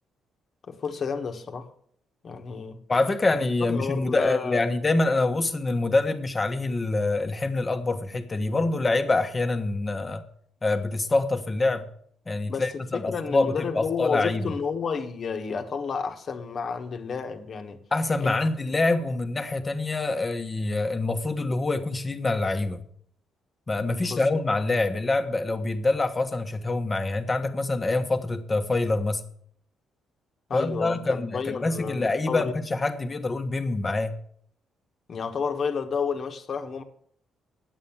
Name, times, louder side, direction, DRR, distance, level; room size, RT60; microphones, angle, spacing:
voice 1, 0.6-1.7 2.2-2.8 3.7-4.6 12.5-17.8 18.2-18.4 24.0-24.3 30.5-32.5 35.1-36.8, left 5 dB, 50° left, 1.4 m, -31 dB
voice 2, 2.9-10.2 10.6-11.9 12.3-14.5 17.9-22.8 23.7-29.2 30.5-34.1, left 2 dB, 25° left, 1.3 m, -25 dB
9.6 x 8.2 x 7.3 m
cardioid pair, 90°, 0 cm